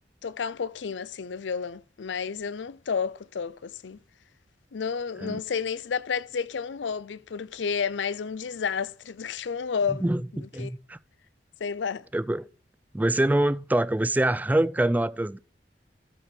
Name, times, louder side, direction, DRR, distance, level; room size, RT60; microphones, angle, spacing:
voice 1, 0.2-4.0 4.7-10.1 10.6-10.7 11.6-12.0, left 6 dB, 90° left, 0.5 m, -31 dB
voice 2, 10.0-11.0 12.1-12.5 12.9-15.4, right 1 dB, 10° right, 0.3 m, -25 dB
13.0 x 4.5 x 4.9 m
head